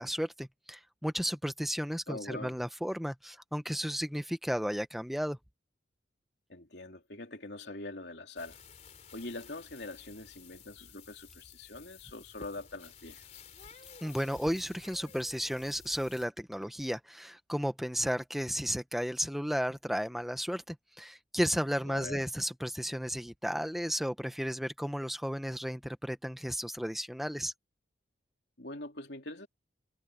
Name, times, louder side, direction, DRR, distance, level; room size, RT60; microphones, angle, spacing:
voice 1, 0.0-5.4 14.0-27.5, equal, ahead, 1.0 m, -34 dB
voice 2, 2.1-2.6 6.5-8.6 9.1-13.4 21.9-22.2 28.6-29.5, left 2 dB, 60° left, 3.2 m, -43 dB
sound 1, 8.4-16.3, left 5 dB, 35° left, 3.8 m, -53 dB
head